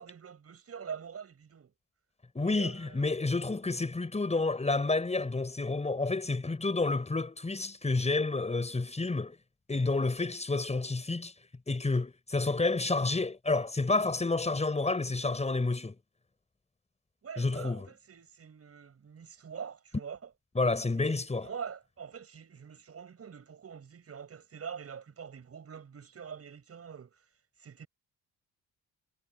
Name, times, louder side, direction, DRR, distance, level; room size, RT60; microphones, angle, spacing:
voice 1, 0.0-1.7 2.4-3.0 17.2-20.2 20.9-27.2 27.6-27.9, right 7 dB, 40° right, 7.8 m, -45 dB
voice 2, 2.3-9.4 9.7-11.3 11.7-15.9 17.4-17.9 20.5-21.5, left 3 dB, 20° left, 6.6 m, -29 dB
cardioid pair, 110°, 35 cm